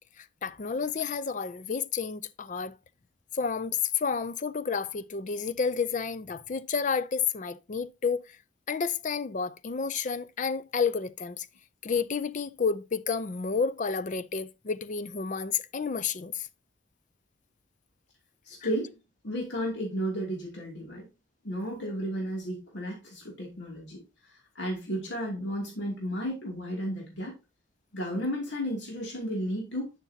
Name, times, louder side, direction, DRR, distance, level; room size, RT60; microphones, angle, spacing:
voice 1, 0.2-2.7 3.3-8.2 8.7-11.5 11.8-16.5, left 5 dB, 45° left, 0.5 m, -30 dB
voice 2, 18.4-18.9 19.2-21.1 21.4-27.4 27.9-29.9, equal, 75° left, 2.7 m, -33 dB
11.0 x 6.0 x 2.8 m
head